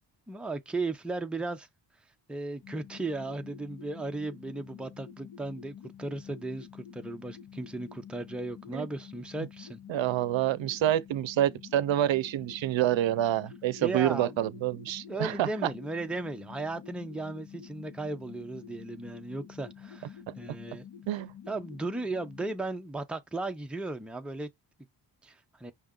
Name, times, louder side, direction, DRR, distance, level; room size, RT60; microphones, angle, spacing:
voice 1, 0.3-1.7 2.3-9.8 13.8-14.8 15.1-20.9 21.5-24.5 25.2-25.7, right 2 dB, ahead, 0.5 m, -36 dB
sound 1, 2.6-22.6, left 8 dB, 50° left, 0.9 m, -48 dB
voice 2, 9.9-15.7 21.1-21.3, right 12 dB, 85° right, 0.6 m, -27 dB
5.7 x 2.4 x 3.6 m
wide cardioid pair, 125°, 44 cm